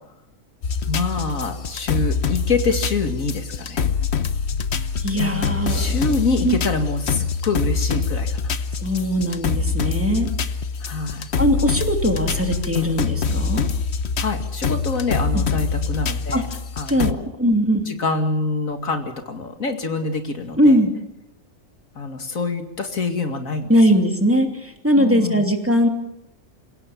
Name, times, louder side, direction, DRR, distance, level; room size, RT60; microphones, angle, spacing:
sound 1, 0.6-17.1, left 5 dB, 55° left, 1.2 m, -25 dB
voice 1, 0.9-3.8 5.7-8.6 10.8-11.3 14.2-16.5 16.8-17.3 17.9-20.8 22.0-23.8 25.0-25.5, left 3 dB, 90° left, 6 dB, 2.6 m, -26 dB
voice 2, 5.0-5.9 6.4-6.6 8.8-10.3 11.4-13.7 15.3-15.4 16.3-16.4 16.9-17.1 17.4-17.8 20.6-20.9 23.7-25.9, equal, 10° right, 4 dB, 2.7 m, -20 dB
28.0 x 17.0 x 7.2 m, 0.89 s
omnidirectional pair, 1.4 m